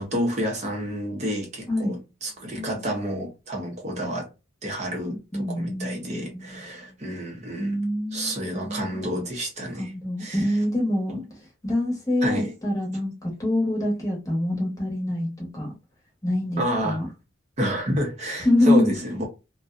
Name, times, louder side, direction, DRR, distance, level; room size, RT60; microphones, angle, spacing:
voice 1, 0.0-4.3 4.6-7.8 8.1-9.9 10.2-10.6 11.1-11.2 12.2-12.5 16.6-17.0 17.6-19.3, equal, 35° right, 0.7 m, -29 dB
voice 2, 1.7-2.0 5.3-6.3 7.6-8.4 9.8-11.2 11.6-15.7 16.2-17.1 18.4-18.9, left 1 dB, 15° left, 0.9 m, -25 dB
2.5 x 2.2 x 2.4 m
head